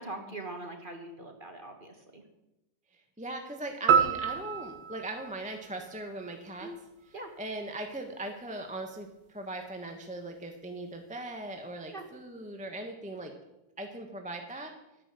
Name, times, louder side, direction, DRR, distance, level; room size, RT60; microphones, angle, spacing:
voice 1, 0.0-2.2 6.6-6.8 7.1-7.3 11.9-12.1, right 2 dB, 30° right, 4 dB, 1.8 m, -42 dB
voice 2, 3.2-6.7 7.4-13.3 13.8-14.7, right 2 dB, 5° right, 3 dB, 1.1 m, -39 dB
sound 1, 3.9-6.3, right 7 dB, 65° right, 1.8 m, -28 dB
11.5 x 10.0 x 7.6 m, 0.95 s
omnidirectional pair, 2.0 m